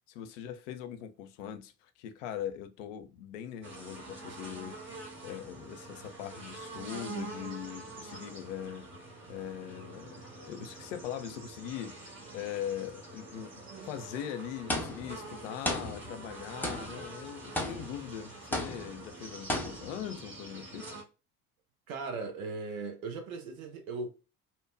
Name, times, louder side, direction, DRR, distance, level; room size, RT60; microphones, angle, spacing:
voice 1, 0.1-8.9 9.3-20.9, left 9 dB, 60° left, 0.5 m, -41 dB
sound 1, 3.6-21.0, right 2 dB, 25° right, 1.2 m, -46 dB
sound 2, 14.7-15.3 15.6-16.3 16.6-17.1 17.5-18.1 18.5-19.0 19.5-20.1, left 1 dB, 5° left, 0.7 m, -35 dB
voice 2, 21.9-24.1, right 3 dB, 65° right, 0.9 m, -38 dB
2.8 x 2.2 x 2.4 m
figure-of-eight pair, 60°, 43 cm